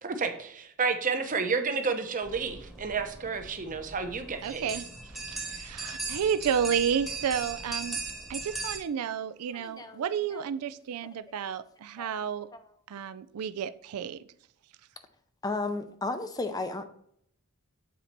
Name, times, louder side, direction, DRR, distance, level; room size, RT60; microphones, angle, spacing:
voice 1, 0.0-4.7, right 5 dB, 35° right, 7 dB, 0.8 m, -31 dB
sound 1, 2.2-8.8, right 3 dB, ahead, 1.0 m, -39 dB
voice 2, 4.4-4.9 5.3-8.0 8.3-12.5 12.9-14.2, right 8 dB, 90° right, 13 dB, 0.4 m, -31 dB
voice 3, 9.5-10.1 10.3-10.5 12.0-12.1 12.5-12.7 15.4-16.9, left 3 dB, 15° left, 9 dB, 0.4 m, -34 dB
7.5 x 4.0 x 4.4 m, 0.70 s
head